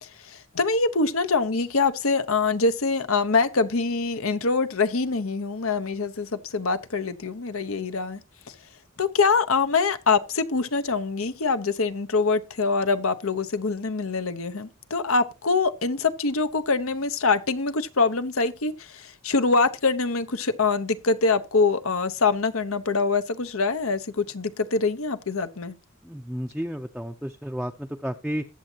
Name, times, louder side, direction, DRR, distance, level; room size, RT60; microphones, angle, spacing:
voice 1, 0.0-8.2 8.5-8.6 9.0-25.7, left 4 dB, 75° left, 1.0 m, -24 dB
voice 2, 26.0-28.4, equal, ahead, 0.6 m, -32 dB
20.5 x 7.3 x 2.9 m
head